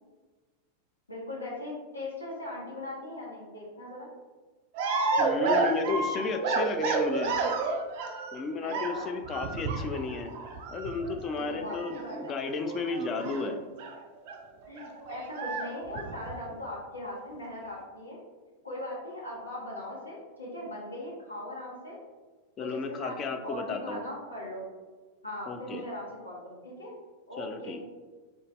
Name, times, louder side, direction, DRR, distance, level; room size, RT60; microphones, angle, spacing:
voice 1, 1.1-4.1 8.6-9.1 11.3-12.4 13.2-13.5 14.7-18.2 18.6-22.0 22.6-24.7 25.2-26.9 27.3-27.8, left 1 dB, 80° left, -5 dB, 0.8 m, -39 dB
sound 1, 4.7-8.4 8.7-14.0 14.2-14.4 14.6-16.5, right 3 dB, 50° right, 0.3 m, -31 dB
voice 2, 5.2-7.4 8.3-10.3 10.7-13.6 22.6-24.0 25.5-25.8 27.4-27.8, left 4 dB, 30° left, 6 dB, 0.3 m, -33 dB
3.9 x 2.2 x 3.1 m, 1.3 s
figure-of-eight pair, 90°, 0 cm